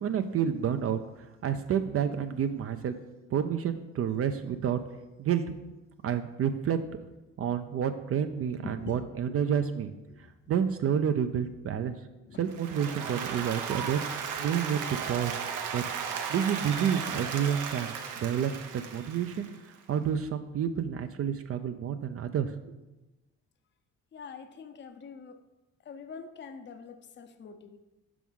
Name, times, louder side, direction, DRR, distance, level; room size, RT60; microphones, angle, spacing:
voice 1, 0.0-2.9 3.3-4.8 5.2-5.5 6.0-6.8 7.4-9.9 10.5-11.9 12.4-15.3 15.7-15.8 16.3-22.7, right 8 dB, 50° right, 9 dB, 0.5 m, -29 dB
voice 2, 8.6-9.0 9.3-9.4 10.1-10.2 12.3-12.4 24.1-25.4 25.9-27.8, left 5 dB, 40° left, 9 dB, 0.6 m, -44 dB
Applause, 12.5-19.7, right 7 dB, 85° right, 0.8 m, -35 dB
6.0 x 6.0 x 3.6 m, 1.0 s
cardioid pair, 90°, 30 cm